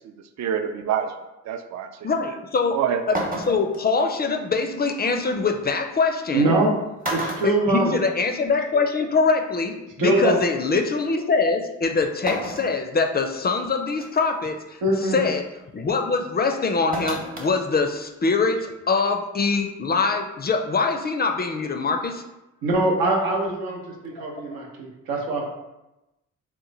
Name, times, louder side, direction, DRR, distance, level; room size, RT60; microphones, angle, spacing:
voice 1, 0.0-1.1 1.4-2.4 2.7-3.0, right 9 dB, 55° right, 7 dB, 0.5 m, -27 dB
voice 2, 2.0-2.8 3.5-6.5 7.4-14.8 15.1-15.4 15.7-22.2 24.2-24.6, left 4 dB, 30° left, 5 dB, 0.4 m, -23 dB
sound 1, 2.6-2.7 3.1-3.8 5.4-5.5 6.5-6.7 7.0-8.4 8.8-8.9 10.1-10.2 12.3-12.8 13.3-13.4 14.0-14.3 16.9-17.5 17.9-18.0, right 1 dB, 25° right, 0.9 m, -30 dB
voice 3, 6.3-6.7 7.1-7.9 10.0-10.4 14.8-15.2 22.6-25.5, right 2 dB, 90° right, -1 dB, 0.8 m, -23 dB
2.9 x 2.2 x 3.8 m, 0.96 s
supercardioid pair, 60°, 34 cm